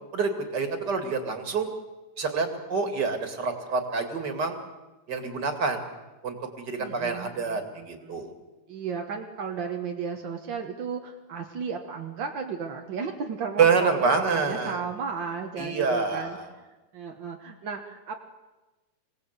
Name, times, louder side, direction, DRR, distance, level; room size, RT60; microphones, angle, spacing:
voice 1, 0.1-1.7 2.2-4.6 5.1-5.9 6.2-8.3 13.6-14.8 15.6-16.5, right 5 dB, 35° right, 6 dB, 2.4 m, -27 dB
voice 2, 6.8-8.1 8.7-16.4 16.9-18.1, right 6 dB, 55° right, 2 dB, 1.3 m, -34 dB
26.0 x 17.5 x 8.1 m, 1.2 s
omnidirectional pair, 3.9 m